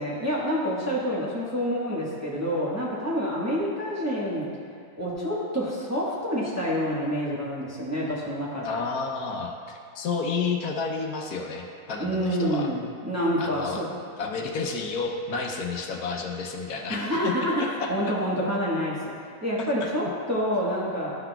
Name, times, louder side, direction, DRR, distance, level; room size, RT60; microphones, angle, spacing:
voice 1, 0.0-4.5 5.0-8.8 12.0-13.9 16.9-21.2, equal, 10° right, -7 dB, 1.0 m, -28 dB
voice 2, 8.6-12.7 13.4-13.8 14.2-18.1 19.6-19.9, left 4 dB, 85° left, 2 dB, 1.3 m, -31 dB
12.5 x 5.9 x 2.3 m, 2.2 s
omnidirectional pair, 1.6 m